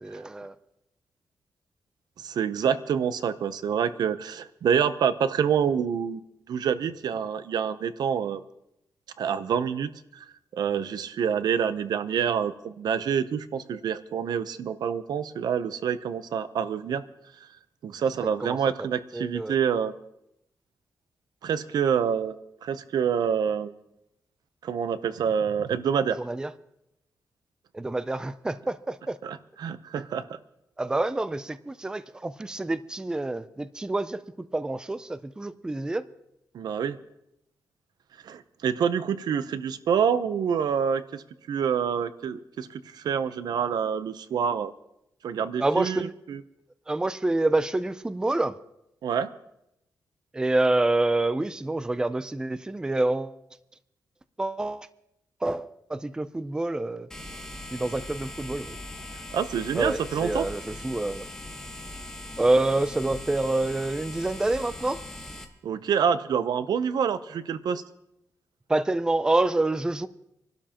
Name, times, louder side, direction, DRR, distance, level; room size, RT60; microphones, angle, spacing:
voice 1, 0.0-0.5 18.2-18.9 19.1-19.5 26.2-26.5 27.7-29.2 30.8-36.1 45.6-46.1 46.9-48.6 50.3-53.4 54.4-54.9 55.4-57.1 57.7-58.8 59.8-61.3 62.4-65.0 68.7-70.1, right 2 dB, 10° right, 13 dB, 0.4 m, -27 dB
voice 2, 2.2-6.2 6.5-8.4 9.2-10.3 10.5-17.0 17.8-19.9 21.4-22.4 22.6-23.7 24.6-26.2 29.2-30.4 36.5-37.0 38.2-44.7 45.2-46.4 49.0-49.3 59.3-60.5 65.6-67.8, right 7 dB, 80° right, 13 dB, 0.7 m, -27 dB
sound 1, 57.1-65.4, left 1 dB, 10° left, 1.4 m, -40 dB
27.0 x 12.0 x 2.9 m, 0.83 s
wide cardioid pair, 145°, 7 cm